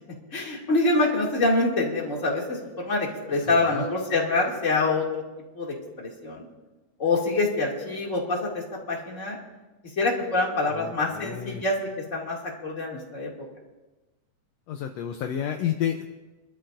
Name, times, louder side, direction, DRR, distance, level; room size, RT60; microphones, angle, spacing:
voice 1, 0.3-5.2 5.5-6.5 7.0-9.4 10.0-12.4 12.6-13.3, left 2 dB, 25° left, -3 dB, 2.5 m, -26 dB
voice 2, 3.4-3.9 10.7-11.7 14.7-16.1, left 10 dB, 75° left, 5 dB, 1.7 m, -31 dB
25.5 x 13.0 x 2.6 m, 1.2 s
omnidirectional pair, 3.5 m